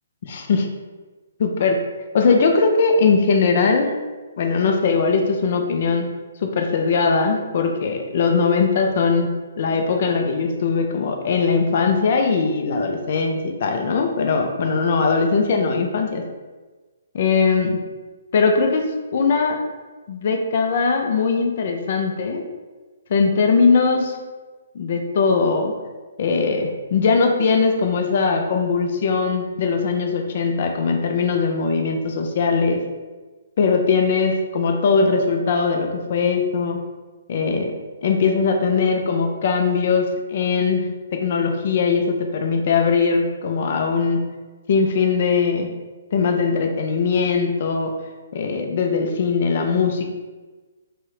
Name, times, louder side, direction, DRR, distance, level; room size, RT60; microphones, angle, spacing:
voice 1, 0.3-0.7 1.4-1.8 2.1-3.9 4.4-6.0 6.4-16.2 17.1-17.8 18.3-19.6 20.1-22.4 23.1-24.2 24.7-25.7 26.2-32.8 33.6-36.8 37.3-37.7 38.0-40.9 41.2-44.2 44.7-45.7 46.1-47.9 48.3-50.0, left 4 dB, 50° left, 3 dB, 0.4 m, -20 dB
3.1 x 2.7 x 3.1 m, 1.3 s
figure-of-eight pair, 135°, 0 cm